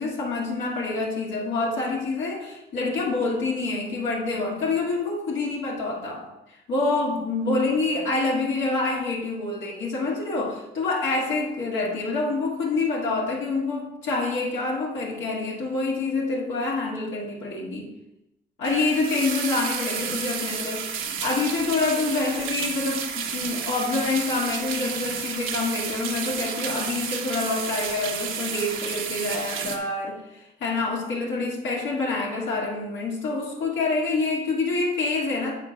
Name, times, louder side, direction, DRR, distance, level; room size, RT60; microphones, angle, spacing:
voice 1, 0.0-17.9 18.6-20.9 21.2-35.5, left 3 dB, 75° left, -5 dB, 2.0 m, -27 dB
sound 1, 18.6-29.8, right 7 dB, 80° right, 1.2 m, -31 dB
7.4 x 4.2 x 6.4 m, 0.92 s
cardioid pair, 90°, 20 cm